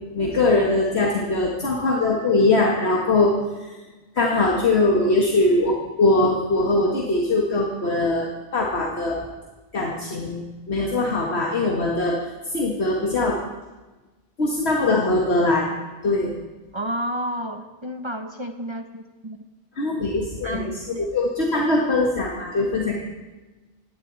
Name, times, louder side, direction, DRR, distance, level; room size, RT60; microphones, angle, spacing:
voice 1, 0.0-3.3 3.6-3.7 4.1-9.2 9.7-12.2 12.5-13.4 14.4-15.7 16.0-16.3 19.8-23.0, left 2 dB, 60° left, -2 dB, 2.0 m, -21 dB
voice 2, 16.7-19.4 20.4-21.1, equal, 25° right, 6 dB, 0.9 m, -31 dB
20.0 x 16.5 x 4.1 m, 1.2 s
omnidirectional pair, 1.2 m